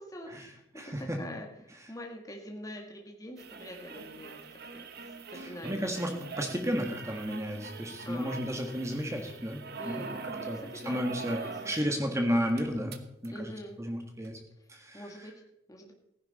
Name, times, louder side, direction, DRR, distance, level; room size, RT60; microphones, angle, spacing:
voice 1, 0.0-0.6 0.8-4.4 4.7-4.9 5.3-5.9 8.1-8.4 9.8-11.1 11.4-11.7 13.3-13.8 14.9-15.3 15.7-15.9, left 1 dB, 15° left, 1 dB, 1.8 m, -44 dB
voice 2, 0.8-1.2 5.3-12.9 13.2-13.5 13.8-14.4 14.7-15.0, equal, 15° right, 3 dB, 1.7 m, -33 dB
sound 1, 3.4-11.9 12.2-12.3 12.5-13.3 14.2-14.3, right 4 dB, 50° right, 1.1 m, -43 dB
15.5 x 10.5 x 4.3 m, 0.82 s
head